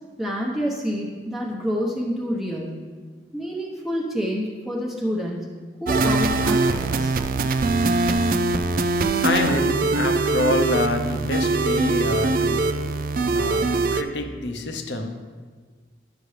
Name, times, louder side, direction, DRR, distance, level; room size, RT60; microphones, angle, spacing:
voice 1, 0.2-2.7 3.3-5.5 5.8-7.2, equal, ahead, -5 dB, 1.0 m, -28 dB
sound 1, 5.9-14.0, right 3 dB, 50° right, 0.4 m, -22 dB
voice 2, 9.2-12.7 13.3-13.7 13.9-15.2, left 2 dB, 75° left, 6 dB, 0.8 m, -26 dB
11.5 x 6.7 x 3.3 m, 1.5 s
head